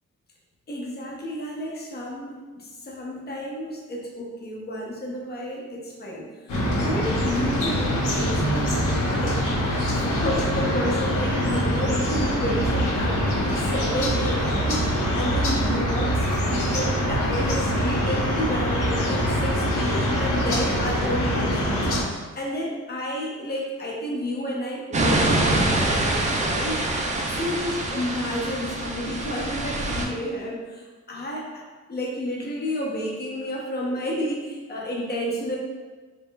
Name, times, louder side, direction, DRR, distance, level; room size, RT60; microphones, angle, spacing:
voice 1, 0.7-14.9 15.1-16.3 16.7-26.8 27.3-31.6 31.9-35.6, equal, 30° left, -2 dB, 0.7 m, -31 dB
sound 1, 6.5-22.0, equal, 85° left, 1.1 m, -24 dB
sound 2, 24.9-30.1, right 2 dB, 25° right, 0.4 m, -25 dB
3.7 x 2.4 x 3.7 m, 1.4 s
wide cardioid pair, 165°, 30 cm